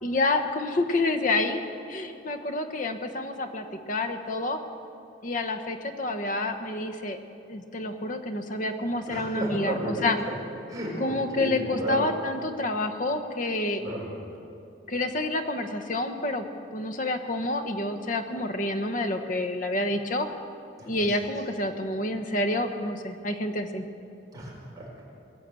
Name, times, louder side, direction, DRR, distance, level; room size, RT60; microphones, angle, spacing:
voice 1, 0.0-1.6 1.9-4.6 5.2-7.2 7.5-10.2 11.0-13.8 14.9-20.3 20.9-23.8, left 2 dB, 45° left, 6 dB, 1.1 m, -28 dB
voice 2, 9.1-10.3 10.7-12.0 13.8-14.1 20.8-21.1 24.3-25.0, right 1 dB, 20° right, -4 dB, 4.3 m, -33 dB
20.5 x 8.5 x 7.7 m, 2.6 s
head